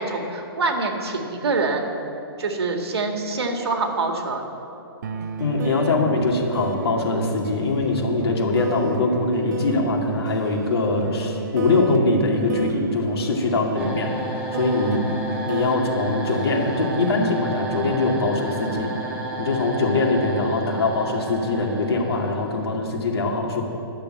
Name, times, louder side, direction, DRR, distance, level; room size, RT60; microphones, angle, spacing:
voice 1, 0.0-1.9 2.4-4.4 14.8-15.4, right 3 dB, 80° right, 3 dB, 1.9 m, -25 dB
sound 1, 5.0-20.1, right 5 dB, 45° right, 0.6 m, -32 dB
voice 2, 5.4-14.1 14.5-15.0 15.4-18.9 19.4-23.6, left 3 dB, 75° left, 1 dB, 2.2 m, -22 dB
sound 2, 13.8-22.7, right 2 dB, 10° right, 1.0 m, -32 dB
12.0 x 6.9 x 8.8 m, 2.8 s
hypercardioid pair, 170°, 13 cm